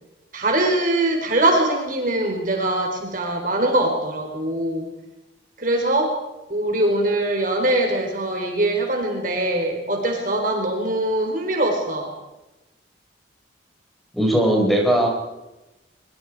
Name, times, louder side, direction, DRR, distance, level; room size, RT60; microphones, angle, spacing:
voice 1, 0.3-4.9 5.6-6.1 6.5-12.1, right 1 dB, 45° right, 2 dB, 4.1 m, -22 dB
voice 2, 14.1-15.1, right 1 dB, ahead, -1 dB, 5.5 m, -18 dB
23.5 x 23.5 x 4.8 m, 1.0 s
head